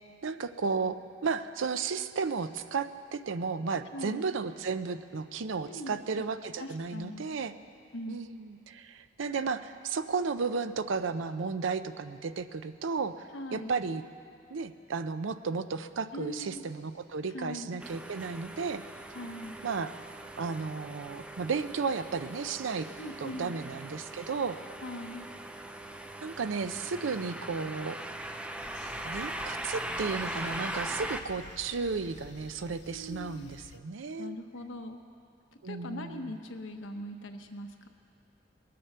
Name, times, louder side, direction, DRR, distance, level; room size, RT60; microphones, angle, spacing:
voice 1, 0.2-7.5 8.1-14.0 14.5-18.8 19.6-19.9 20.4-22.9 23.2-24.6 26.2-28.0 29.0-34.4 35.6-36.3, right 5 dB, 90° right, 11 dB, 0.5 m, -34 dB
voice 2, 3.9-4.3 5.7-6.0 6.6-7.3 7.9-8.2 13.3-13.7 16.1-16.7 17.3-17.8 19.1-19.6 23.0-23.6 24.8-25.3 32.9-33.5 34.2-35.0 35.6-37.9, left 1 dB, 90° left, 5 dB, 1.0 m, -41 dB
sound 1, 17.8-31.2, right 1 dB, 5° right, 0.5 m, -40 dB
sound 2, 28.6-33.8, left 5 dB, 60° left, 0.4 m, -50 dB
21.0 x 7.6 x 6.7 m, 2.5 s
head